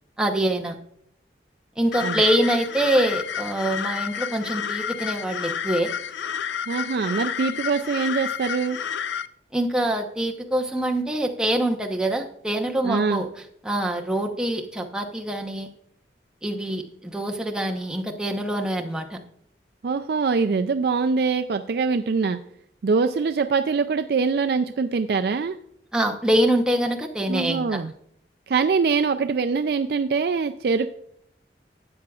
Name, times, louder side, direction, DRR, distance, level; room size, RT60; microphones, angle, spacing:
voice 1, 0.2-0.7 1.8-5.9 9.5-13.3 13.6-15.7 16.4-19.2 25.9-27.8, right 1 dB, 5° right, 1 dB, 0.9 m, -24 dB
sound 1, 1.9-9.3, left 8 dB, 85° left, 0.4 m, -30 dB
voice 2, 6.7-8.8 12.8-13.2 19.8-22.4 22.8-25.6 27.3-27.9 28.5-30.9, right 5 dB, 60° right, 8 dB, 0.4 m, -23 dB
12.5 x 8.5 x 2.4 m, 0.70 s
head